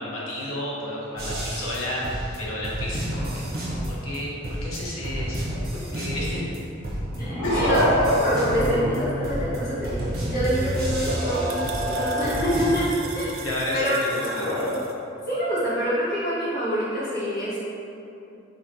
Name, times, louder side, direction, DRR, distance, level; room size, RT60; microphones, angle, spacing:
voice 1, 0.0-4.3 4.6-5.6 5.9-6.4 7.4-7.7 13.4-14.5, left 1 dB, 80° left, -5 dB, 0.8 m, -31 dB
sound 1, 1.2-4.2 4.4-6.6 6.8-12.8, right 1 dB, 45° right, 0.7 m, -30 dB
sound 2, 6.9-9.5 11.0-12.8 14.2-14.7, equal, 25° right, 1.2 m, -27 dB
voice 2, 7.2-13.4 13.7-14.8 15.3-17.6, equal, 45° left, -11 dB, 1.2 m, -27 dB
sound 3, 10.4-14.9, right 4 dB, 70° right, 0.3 m, -40 dB
3.9 x 3.0 x 2.6 m, 2.8 s
head